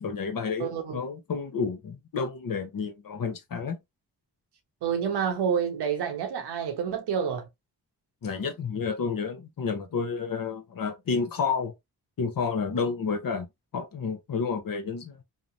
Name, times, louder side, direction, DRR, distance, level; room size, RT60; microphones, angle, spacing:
voice 1, 0.0-3.8 8.2-11.7 12.2-13.5 13.7-15.2, left 5 dB, 55° left, 0.8 m, -30 dB
voice 2, 0.6-1.0 4.8-7.5, right 7 dB, 85° right, 0.7 m, -28 dB
2.9 x 2.1 x 2.4 m
supercardioid pair, 40°, 39 cm